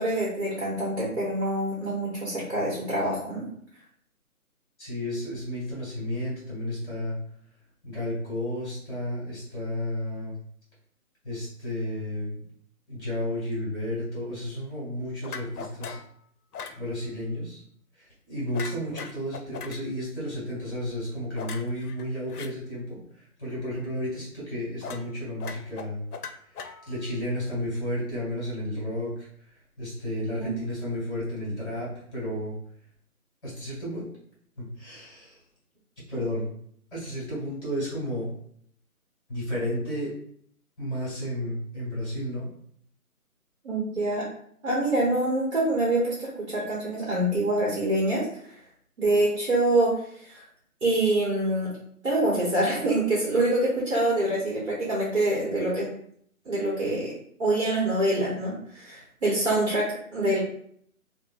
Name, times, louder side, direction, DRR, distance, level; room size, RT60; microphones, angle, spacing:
voice 1, 0.0-3.4 30.4-30.5 43.6-44.2 44.6-48.3 49.0-49.9 50.2-50.4 50.8-51.7 52.0-55.9 56.4-57.1 57.4-60.4, right 1 dB, 50° right, -6 dB, 1.1 m, -25 dB
voice 2, 4.8-7.2 7.8-10.3 11.2-12.4 12.9-16.0 16.8-17.6 17.9-26.1 26.9-29.5 29.8-32.5 33.4-34.1 34.6-35.4 36.1-36.5 36.9-38.3 39.3-40.1 40.8-42.5, left 1 dB, 15° left, -7 dB, 1.3 m, -32 dB
sound 1, 15.2-16.1 16.5-16.8 18.5-19.8 21.4-22.5 24.8-25.1 25.4-27.1, left 5 dB, 85° left, 0.5 m, -39 dB
2.9 x 2.2 x 2.5 m, 0.64 s
figure-of-eight pair, 160°, 44 cm